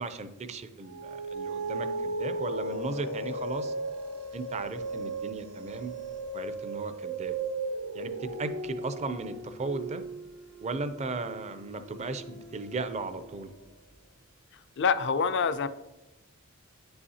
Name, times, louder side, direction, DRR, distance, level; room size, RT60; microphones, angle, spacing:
voice 1, 0.0-3.7 4.3-5.9 6.3-7.4 7.9-10.0 10.6-13.5, right 3 dB, 30° right, 10 dB, 0.5 m, -36 dB
sound 1, 0.8-13.6, right 2 dB, 80° right, 1.0 m, -37 dB
voice 2, 14.8-15.7, left 5 dB, 55° left, 13 dB, 0.4 m, -26 dB
9.8 x 5.6 x 2.8 m, 1.0 s
head